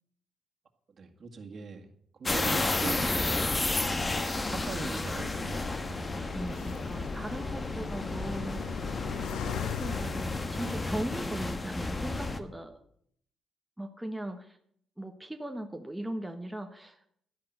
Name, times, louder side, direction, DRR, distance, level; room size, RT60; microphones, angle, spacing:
voice 1, 1.0-1.9 2.2-4.0 4.5-5.7, right 5 dB, 45° right, 1 dB, 2.0 m, -41 dB
Phase Breath, 2.3-12.4, left 2 dB, 20° left, 1.2 m, -32 dB
sound 1, 5.1-11.4, left 10 dB, 90° left, 0.6 m, -40 dB
voice 2, 5.9-8.9 9.4-12.8 13.8-14.6 15.0-17.0, right 1 dB, 5° right, 4 dB, 1.2 m, -39 dB
12.0 x 10.5 x 6.6 m, 0.66 s
cardioid pair, 90°, 0 cm